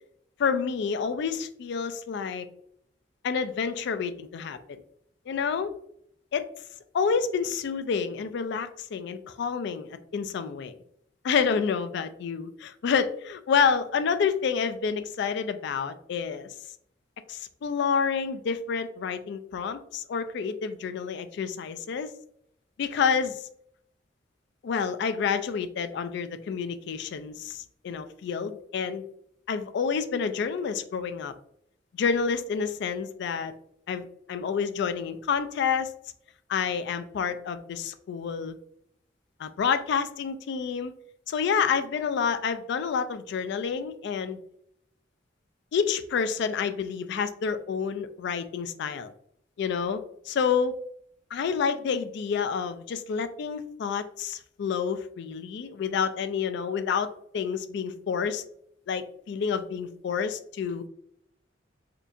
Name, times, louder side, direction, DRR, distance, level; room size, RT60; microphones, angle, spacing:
voice 1, 0.4-2.5 3.2-4.8 5.3-5.7 6.3-6.4 6.9-10.8 11.2-16.5 17.3-22.1 22.8-23.4 24.6-29.1 29.5-31.3 31.9-33.5 33.9-35.9 36.5-38.5 39.4-40.9 41.3-44.4 45.7-49.1 49.6-50.8 51.3-58.4 58.9-60.9, left 6 dB, 65° left, 11 dB, 0.3 m, -29 dB
4.3 x 2.4 x 2.5 m, 0.70 s
head